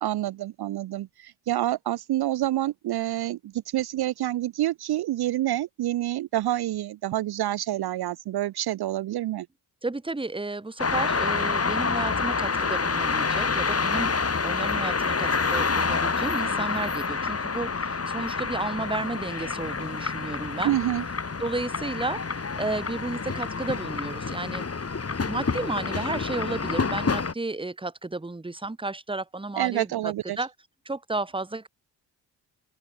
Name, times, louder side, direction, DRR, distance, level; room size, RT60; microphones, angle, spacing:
voice 1, 0.0-9.5 20.6-21.0 29.6-30.4, right 14 dB, 50° right, 0.9 m, -27 dB
voice 2, 9.8-14.1 14.4-20.7 21.4-22.2 22.6-24.6 25.3-29.9 30.4-30.5 30.8-31.7, right 2 dB, 10° right, 1.6 m, -32 dB
sound 1, 10.8-27.3, left 4 dB, 30° left, 3.9 m, -28 dB
open air
figure-of-eight pair, 40°, 49 cm